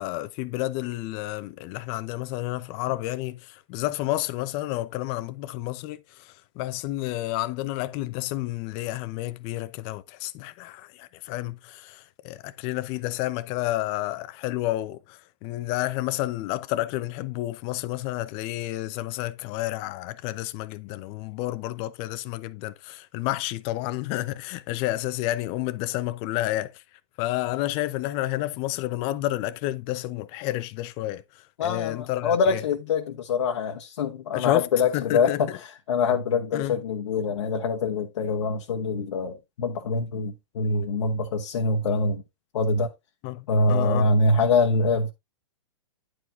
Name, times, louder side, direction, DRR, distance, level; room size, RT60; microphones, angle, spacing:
voice 1, 0.0-26.8 27.2-31.2 31.6-32.6 34.3-34.7 34.9-35.6 36.5-36.8 43.2-44.2, left 16 dB, 35° left, 0.7 m, -30 dB
voice 2, 31.6-35.5 35.9-42.2 42.5-42.9 43.5-45.1, left 3 dB, 70° left, 1.2 m, -24 dB
10.0 x 4.7 x 3.7 m
hypercardioid pair, 125°, 16 cm